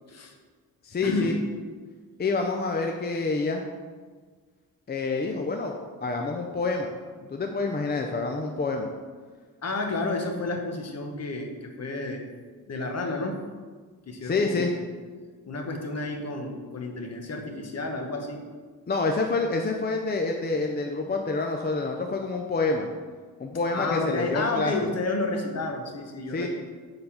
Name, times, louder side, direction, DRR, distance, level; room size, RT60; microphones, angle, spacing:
voice 1, 0.8-1.4 2.2-3.6 4.9-5.7 6.0-6.9 7.3-8.9 14.2-14.7 18.9-22.9 23.4-24.7 26.3-26.5, left 3 dB, 30° left, 2 dB, 0.5 m, -27 dB
voice 2, 9.6-12.3 12.7-13.4 14.1-14.8 15.4-18.4 23.7-26.5, left 2 dB, 45° left, 2 dB, 1.1 m, -31 dB
6.8 x 3.9 x 5.6 m, 1.5 s
wide cardioid pair, 130°, 36 cm